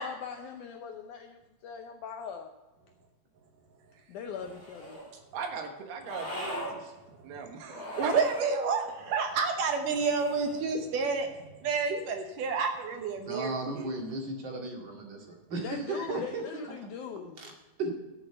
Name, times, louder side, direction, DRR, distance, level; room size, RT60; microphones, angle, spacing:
voice 1, 0.0-2.5 4.1-5.0 15.6-17.4, left 7 dB, 75° left, 5 dB, 1.8 m, -41 dB
sound 1, 4.3-5.1 6.0-6.8 7.7-8.5 9.9-10.7, equal, 15° left, 3.1 m, -40 dB
voice 2, 5.1-6.9 7.2-8.1, right 6 dB, 85° right, 4 dB, 3.3 m, -39 dB
voice 3, 8.0-13.9, right 5 dB, 70° right, 5 dB, 2.4 m, -29 dB
voice 4, 13.2-16.4 17.4-17.5 17.8-17.9, right 2 dB, 40° right, 0 dB, 2.3 m, -35 dB
12.5 x 6.6 x 6.8 m, 1.1 s
omnidirectional pair, 4.3 m